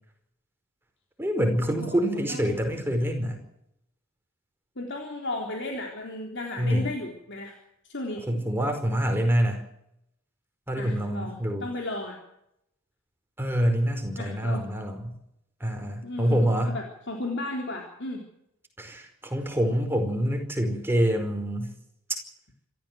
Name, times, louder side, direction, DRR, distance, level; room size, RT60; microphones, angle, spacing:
voice 1, 1.2-3.4 6.6-6.9 8.3-9.6 10.7-11.7 13.4-15.1 15.6-16.7 18.8-21.7, equal, 10° right, 4 dB, 4.9 m, -26 dB
voice 2, 1.7-2.6 4.8-7.6 7.8-8.2 10.7-12.2 14.2-14.7 16.0-18.3, left 2 dB, 55° left, 1 dB, 3.7 m, -35 dB
26.5 x 14.5 x 7.8 m, 0.78 s
head